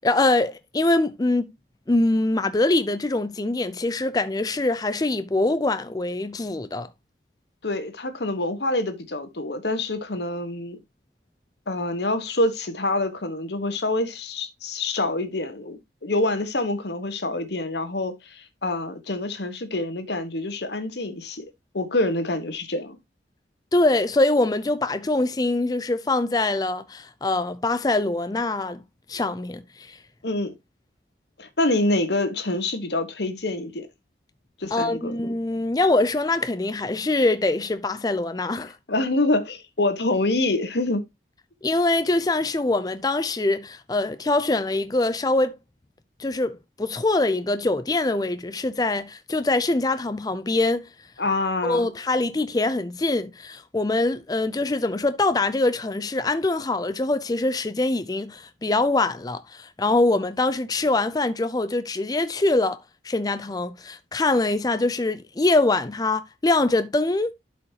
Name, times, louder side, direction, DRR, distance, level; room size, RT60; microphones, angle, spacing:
voice 1, 0.0-1.5 1.9-6.9 23.7-28.8 29.1-30.0 34.7-38.8 41.6-45.6 46.2-50.9 51.6-62.8 63.0-67.3, left 2 dB, 20° left, 0.4 m, -23 dB
voice 2, 7.6-10.8 11.7-21.4 21.7-23.0 30.2-30.5 31.4-33.9 34.6-35.2 38.9-41.0 51.2-51.9, left 2 dB, 70° left, 1.3 m, -26 dB
11.5 x 5.1 x 2.8 m
head